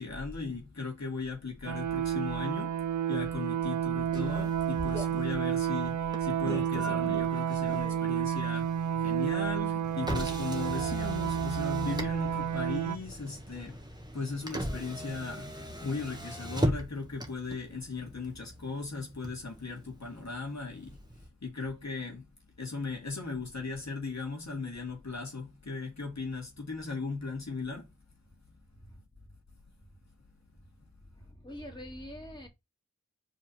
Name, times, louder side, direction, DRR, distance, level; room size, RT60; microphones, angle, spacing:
voice 1, 0.0-13.9 14.1-15.5 15.8-21.0 21.4-22.3 22.6-27.9, left 4 dB, 70° left, 2.3 m, -37 dB
sound 1, 1.7-13.0, right 9 dB, 85° right, 0.5 m, -31 dB
Motor vehicle (road), 4.1-21.3, equal, 15° right, 1.6 m, -39 dB
voice 2, 13.3-13.8 28.8-29.0 31.1-32.5, left 1 dB, 15° left, 2.6 m, -46 dB
5.2 x 4.2 x 5.8 m
wide cardioid pair, 60°, 29 cm